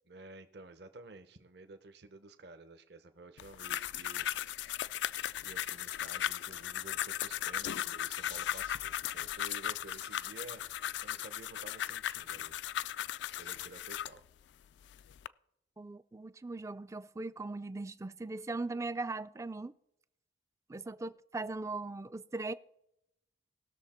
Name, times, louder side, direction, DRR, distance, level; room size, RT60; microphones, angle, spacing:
voice 1, 0.1-4.3 5.4-12.6 13.3-14.2, right 2 dB, 60° right, 0.8 m, -52 dB
sound 1, 3.4-14.2 14.8-15.3, left 11 dB, 70° left, 0.3 m, -37 dB
voice 2, 15.8-19.7 20.7-22.5, right 3 dB, 15° right, 0.3 m, -39 dB
19.0 x 6.6 x 4.3 m
head